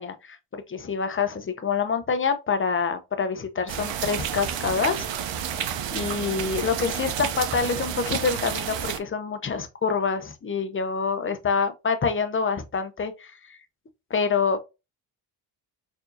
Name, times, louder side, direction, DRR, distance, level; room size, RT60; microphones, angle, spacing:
voice 1, 0.0-5.1 5.9-13.6 14.1-14.6, left 5 dB, 25° left, 0.7 m, -26 dB
sound 1, 3.7-9.0, right 9 dB, 65° right, 0.8 m, -30 dB
4.5 x 2.8 x 2.6 m
cardioid pair, 95°, 49 cm